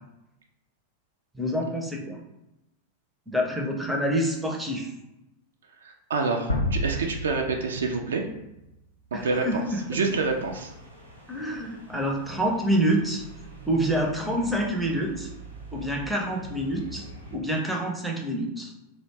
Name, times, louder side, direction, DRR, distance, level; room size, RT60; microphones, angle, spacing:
voice 1, 1.3-2.2 3.3-4.9 9.1-10.0 11.3-13.2 13.7-15.3 15.7-18.7, right 1 dB, 5° right, 0 dB, 0.5 m, -27 dB
voice 2, 6.1-8.2 9.1-9.6 9.9-10.7, right 4 dB, 65° right, 2 dB, 0.3 m, -27 dB
sound 1, 6.5-9.4, left 1 dB, 75° left, 0.4 m, -31 dB
sound 2, 9.2-17.4, right 1 dB, 85° right, 0.7 m, -45 dB
2.5 x 2.1 x 3.1 m, 0.90 s
figure-of-eight pair, 90°, 0 cm